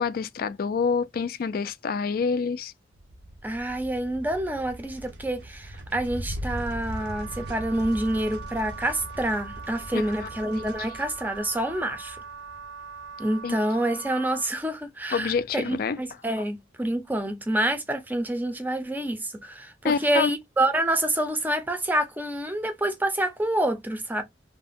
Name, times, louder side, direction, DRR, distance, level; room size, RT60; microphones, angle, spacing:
voice 1, 0.0-2.7 9.9-10.3 13.4-13.6 15.1-16.0 19.8-20.3, left 5 dB, 50° left, 0.3 m, -27 dB
sound 1, 2.9-13.5, equal, 60° right, 0.5 m, -40 dB
voice 2, 3.4-12.2 13.2-24.2, right 1 dB, 10° right, 0.5 m, -27 dB
Wind instrument woodwind instrument, 6.9-14.5, right 5 dB, 75° right, 0.9 m, -42 dB
2.5 x 2.1 x 3.5 m
head